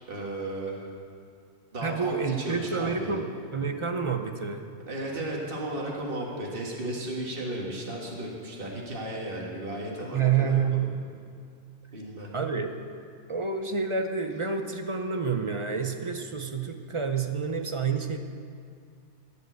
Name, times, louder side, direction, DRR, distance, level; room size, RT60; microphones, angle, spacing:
voice 1, 0.1-0.8 1.7-3.2 4.9-10.8 11.9-12.3, right 1 dB, 50° right, -2 dB, 2.0 m, -34 dB
voice 2, 1.8-4.7 10.1-10.9 12.3-12.7 13.3-18.2, right 6 dB, 35° right, 5 dB, 0.6 m, -28 dB
15.0 x 5.6 x 8.0 m, 2.2 s
omnidirectional pair, 1.2 m